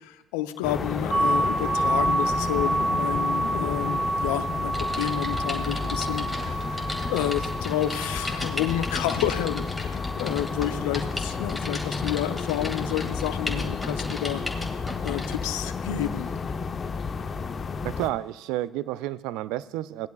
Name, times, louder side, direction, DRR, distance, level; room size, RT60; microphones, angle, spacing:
voice 1, 0.0-14.4 14.7-16.3, left 12 dB, 90° left, 11 dB, 0.6 m, -30 dB
sound 1, 0.6-18.1, left 5 dB, 45° left, 0.7 m, -32 dB
sound 2, 1.1-12.8, right 2 dB, 25° right, 0.8 m, -30 dB
Typing, 4.7-15.4 16.0-16.2, left 1 dB, 5° left, 2.0 m, -37 dB
voice 2, 17.8-20.1, right 15 dB, 80° right, 17 dB, 0.3 m, -30 dB
18.5 x 10.5 x 2.3 m, 0.92 s
supercardioid pair, 65°, 0 cm